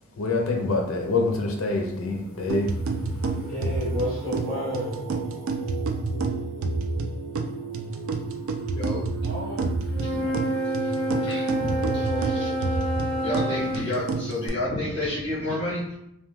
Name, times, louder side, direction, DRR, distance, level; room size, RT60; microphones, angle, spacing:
voice 1, 0.2-2.8 3.2-3.4, left 3 dB, 85° left, 1 dB, 0.5 m, -26 dB
Singing, 1.1-14.5, right 5 dB, 10° right, 0.8 m, -39 dB
sound 1, 2.5-14.5, right 3 dB, 90° right, 0.3 m, -29 dB
voice 2, 3.3-5.0 9.2-9.7 10.2-10.3 11.8-12.6, equal, 55° right, -13 dB, 0.9 m, -32 dB
voice 3, 8.7-9.1 10.0-10.4 10.6-10.9 11.2-12.7 13.2-16.0, left 1 dB, 25° left, -8 dB, 0.9 m, -31 dB
Wind instrument woodwind instrument, 9.9-13.9, equal, 5° left, 0.3 m, -28 dB
2.3 x 2.2 x 3.0 m, 0.80 s
head